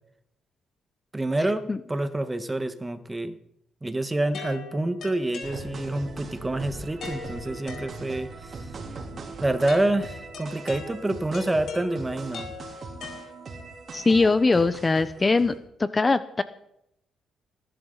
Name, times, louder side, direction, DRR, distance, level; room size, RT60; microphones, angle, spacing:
voice 1, 1.1-3.4 3.8-8.7 9.4-12.5, right 2 dB, 15° right, 11 dB, 1.4 m, -27 dB
sound 1, 4.3-6.1 7.0-8.4 9.7-13.8, left 5 dB, 65° left, 4.7 m, -41 dB
sound 2, 5.4-15.6, right 3 dB, 45° right, 3.4 m, -40 dB
voice 2, 13.9-15.5 15.8-16.4, left 3 dB, 25° left, 13 dB, 0.8 m, -21 dB
19.5 x 11.5 x 4.0 m, 0.76 s
cardioid pair, 90°, 0 cm